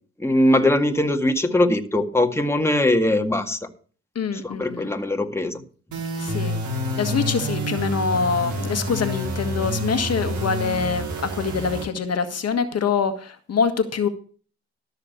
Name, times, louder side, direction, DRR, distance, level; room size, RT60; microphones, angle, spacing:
voice 1, 0.2-3.6 4.3-5.6, left 1 dB, 10° left, 4 dB, 2.0 m, -21 dB
voice 2, 4.1-4.9 6.1-6.5 7.0-14.1, left 5 dB, 50° left, 8 dB, 1.6 m, -25 dB
sound 1, 5.9-11.9, equal, 60° right, 4.4 m, -28 dB
12.5 x 6.6 x 7.0 m, 0.41 s
hypercardioid pair, 50°, 33 cm